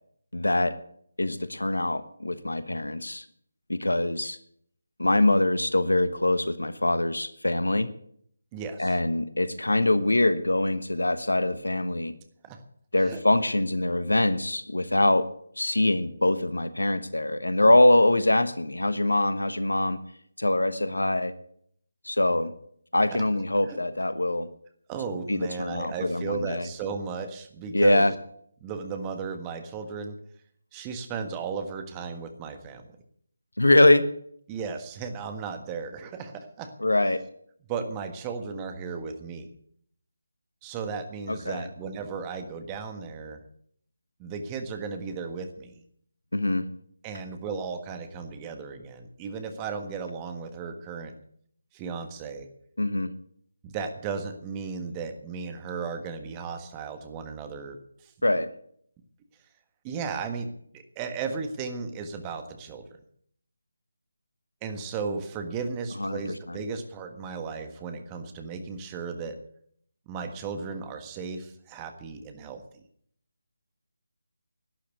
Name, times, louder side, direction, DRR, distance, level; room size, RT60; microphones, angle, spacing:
voice 1, 0.3-0.8 1.2-3.2 3.7-4.4 5.0-7.9 8.8-12.1 12.9-15.3 15.6-20.0 20.4-21.3 22.0-22.5 22.9-24.5 25.3-26.7 27.7-28.1 33.6-34.1 36.8-37.2 41.3-41.7 46.3-46.7 52.8-53.1 58.2-58.5 66.0-66.2 66.5-66.6, left 1 dB, 75° left, 13 dB, 1.2 m, -23 dB
voice 2, 8.5-9.0 12.4-12.6 13.0-13.2 23.1-23.2 23.7-23.8 24.9-28.0 28.6-30.2 30.7-33.0 34.5-36.7 37.7-39.5 40.6-43.4 44.2-45.8 47.0-51.1 51.7-52.5 53.6-58.1 59.8-62.9 64.6-69.4 70.1-72.8, right 5 dB, 15° right, 7 dB, 1.5 m, -35 dB
12.0 x 10.0 x 8.2 m, 0.67 s
figure-of-eight pair, 155°, 0 cm